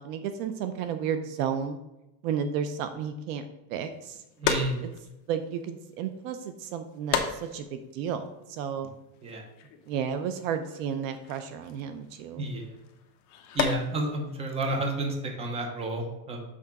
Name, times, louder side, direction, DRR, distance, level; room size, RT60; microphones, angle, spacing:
voice 1, 0.0-1.8 2.2-3.4 3.7-4.2 4.8-4.9 5.3-8.9 9.9-12.5, right 7 dB, 55° right, 9 dB, 0.6 m, -32 dB
sound 1, 3.9-15.3, left 7 dB, 35° left, 0.7 m, -36 dB
voice 2, 4.4-4.8 9.2-9.4 12.4-12.7 13.5-16.4, right 1 dB, 10° right, 3 dB, 0.7 m, -30 dB
6.0 x 3.8 x 5.8 m, 0.94 s
supercardioid pair, 160°, 49 cm